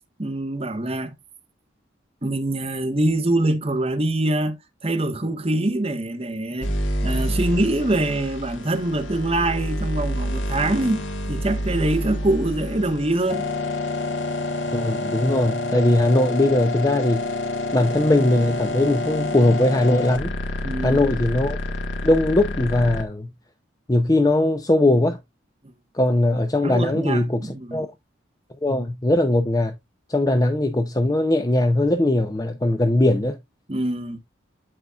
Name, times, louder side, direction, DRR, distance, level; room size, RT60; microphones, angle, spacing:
voice 1, 0.2-1.1 2.2-6.7 7.0-13.5 20.6-21.0 25.6-25.7 26.6-27.8 33.7-34.2, right 1 dB, 30° right, 1.1 m, -24 dB
sound 1, 6.6-23.0, left 1 dB, 75° left, 1.4 m, -28 dB
voice 2, 14.7-17.2 17.7-20.3 20.8-21.6 22.0-23.3 23.9-25.2 25.9-27.9 28.6-29.7 30.1-33.4, left 1 dB, 20° left, 0.6 m, -20 dB
12.0 x 4.1 x 2.3 m
head